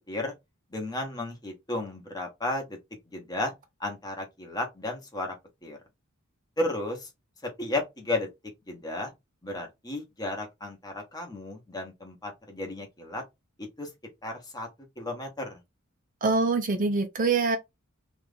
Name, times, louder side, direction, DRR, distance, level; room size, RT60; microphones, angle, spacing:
voice 1, 0.7-2.8 3.1-3.5 3.8-5.3 5.6-5.8 6.6-7.1 7.6-8.3 8.7-9.1 9.4-13.2 13.6-13.9 14.2-14.7 15.0-15.6, left 2 dB, 20° left, 1.0 m, -33 dB
voice 2, 16.2-17.6, right 4 dB, 40° right, 0.5 m, -24 dB
3.0 x 2.4 x 3.4 m
head